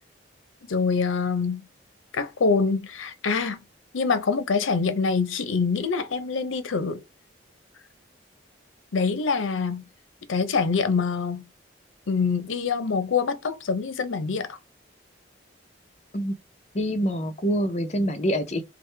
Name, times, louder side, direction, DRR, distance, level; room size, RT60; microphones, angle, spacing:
voice 1, 0.7-1.7 2.1-3.6 3.9-7.0 8.9-9.8 10.3-11.4 12.1-14.6, left 5 dB, 90° left, 0.6 m, -25 dB
voice 2, 16.7-18.6, equal, 35° left, 0.5 m, -25 dB
4.7 x 2.1 x 3.2 m
head